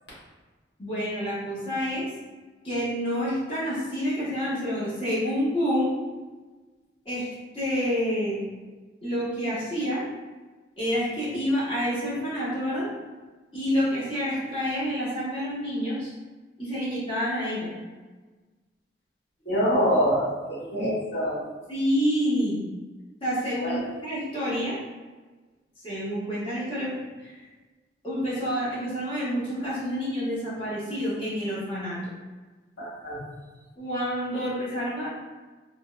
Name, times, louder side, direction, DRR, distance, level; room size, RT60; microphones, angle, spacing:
voice 1, 0.8-2.1 2.6-5.9 7.0-8.4 9.0-10.0 10.8-12.9 13.5-16.1 16.6-17.7 21.7-22.6 23.2-23.8 24.0-24.8 25.8-26.9 27.2-27.4 28.0-32.0 33.8-35.1, equal, 30° left, -10 dB, 1.2 m, -28 dB
voice 2, 19.4-21.4 23.6-23.9 32.8-33.2, equal, 75° left, -7 dB, 1.2 m, -25 dB
3.8 x 2.3 x 2.3 m, 1.3 s
head